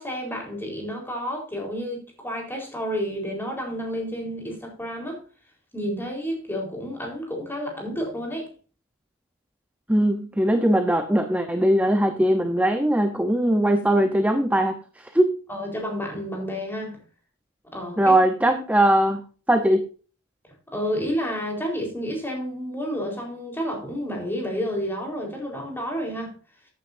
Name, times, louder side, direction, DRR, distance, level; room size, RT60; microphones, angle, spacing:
voice 1, 0.0-5.2 5.7-8.5 15.5-17.0 17.7-18.2 18.5-18.6 20.7-26.3, equal, 10° left, 4.1 m, -30 dB
voice 2, 9.9-15.4 18.0-19.2 19.5-19.8, right 1 dB, 5° right, 0.8 m, -20 dB
14.0 x 9.5 x 2.7 m
head